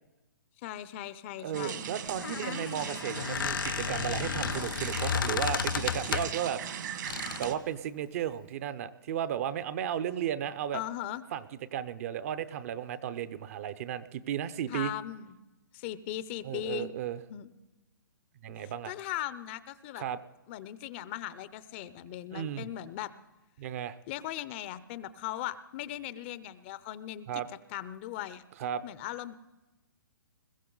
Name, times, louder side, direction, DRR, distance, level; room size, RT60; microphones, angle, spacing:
voice 1, 0.6-1.8 10.7-11.2 14.7-15.3 15.7-16.9 17.3-17.5 18.6-20.0 20.5-23.1 24.1-28.4 28.8-29.3, left 13 dB, 35° left, 15 dB, 0.6 m, -39 dB
voice 2, 1.4-6.6 7.4-10.8 11.3-11.4 11.7-14.9 16.4-17.2 18.4-18.9 19.9-20.2 22.3-22.7 23.6-24.0 27.3-27.5 28.6-28.8, right 9 dB, 45° right, 14 dB, 0.7 m, -34 dB
sound 1, 1.5-7.5, right 8 dB, 60° right, 1.8 m, -39 dB
Squeak, 2.1-6.5 7.1-7.6, left 8 dB, 80° left, 0.4 m, -33 dB
21.5 x 15.0 x 3.9 m, 1.1 s
hypercardioid pair, 145°, 11 cm